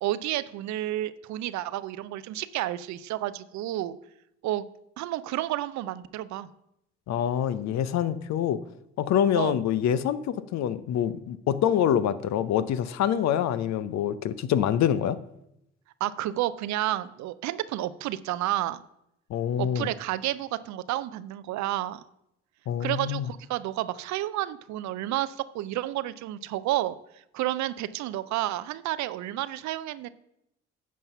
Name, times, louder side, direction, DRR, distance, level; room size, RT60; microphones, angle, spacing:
voice 1, 0.0-4.0 4.4-4.6 5.0-6.5 9.4-9.6 16.0-18.8 19.6-22.0 22.8-27.0 27.3-30.1, right 14 dB, 60° right, 16 dB, 0.6 m, -30 dB
voice 2, 7.1-8.6 9.0-15.2 19.3-19.9 22.7-23.3, left 9 dB, 55° left, 14 dB, 0.7 m, -26 dB
9.4 x 5.6 x 5.6 m, 0.80 s
hypercardioid pair, 50°, 33 cm